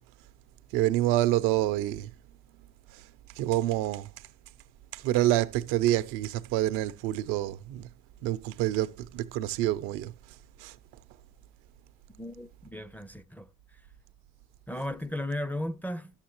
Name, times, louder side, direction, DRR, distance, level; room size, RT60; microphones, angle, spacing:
voice 1, 0.7-2.1 3.4-4.1 4.9-7.9 8.2-10.1 10.6-10.7, right 14 dB, 90° right, 0.6 m, -27 dB
voice 2, 12.2-13.5 14.7-16.1, left 1 dB, 5° left, 0.4 m, -35 dB
11.0 x 7.3 x 2.9 m
supercardioid pair, 80°, 32 cm